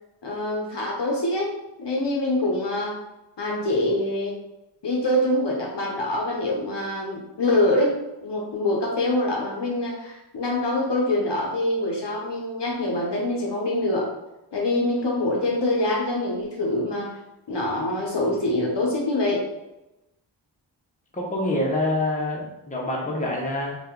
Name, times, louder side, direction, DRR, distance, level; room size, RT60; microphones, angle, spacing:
voice 1, 0.2-1.5 1.8-3.0 3.4-4.3 4.8-8.0 8.2-14.1 14.5-17.1 17.5-19.4, left 1 dB, 65° left, -2 dB, 0.8 m, -25 dB
voice 2, 21.1-23.7, left 1 dB, 15° left, -3 dB, 0.9 m, -26 dB
2.7 x 2.4 x 3.6 m, 0.94 s
cardioid pair, 40°, 47 cm